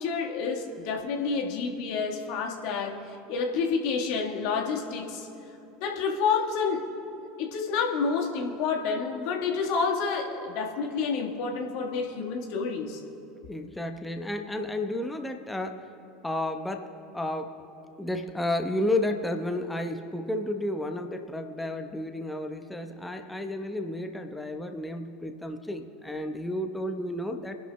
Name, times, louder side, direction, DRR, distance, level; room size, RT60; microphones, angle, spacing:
voice 1, 0.0-5.3 5.8-6.9 7.4-13.0, left 5 dB, 60° left, 1 dB, 1.5 m, -29 dB
voice 2, 13.5-15.9 16.2-17.6 18.0-27.6, left 1 dB, 10° left, 5 dB, 1.0 m, -32 dB
27.0 x 11.0 x 2.2 m, 2.8 s
figure-of-eight pair, 75°, 0 cm